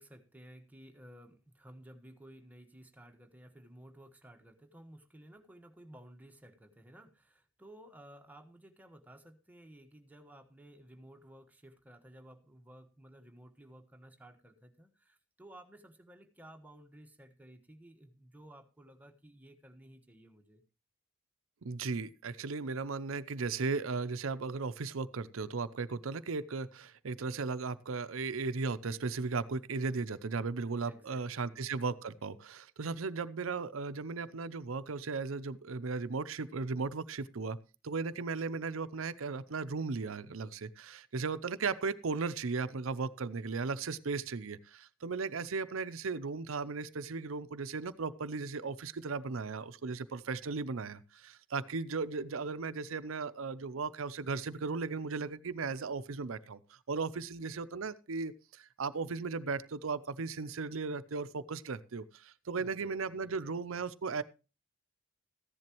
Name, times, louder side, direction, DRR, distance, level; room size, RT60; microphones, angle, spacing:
voice 1, 0.0-20.6 30.8-31.6 62.6-63.8, right 1 dB, 10° right, 5 dB, 1.3 m, -55 dB
voice 2, 21.6-37.6 37.8-64.2, right 4 dB, 75° right, 13 dB, 0.6 m, -36 dB
14.5 x 10.5 x 3.0 m, 0.31 s
head